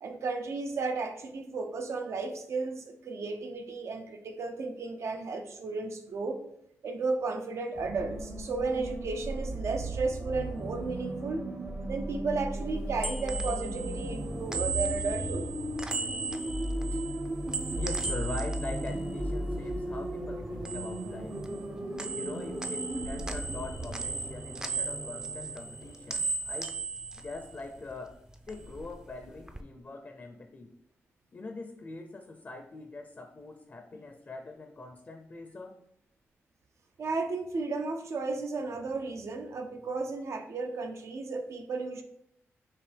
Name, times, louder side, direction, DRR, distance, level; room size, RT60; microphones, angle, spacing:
voice 1, 0.0-6.4 6.8-11.5 11.9-15.6 37.0-42.0, right 3 dB, 65° right, 5 dB, 0.6 m, -34 dB
sound 1, 7.7-26.0, right 1 dB, 35° right, 0.8 m, -36 dB
sound 2, 12.7-20.0 20.3-21.7 22.0-28.0 28.3-29.6, right 4 dB, 15° right, 0.4 m, -37 dB
voice 2, 17.7-21.4 22.1-26.7 27.2-28.2 28.5-30.7 31.3-35.8, left 2 dB, 40° left, 5 dB, 0.5 m, -43 dB
4.7 x 2.8 x 3.4 m, 0.75 s
cardioid pair, 70°, 5 cm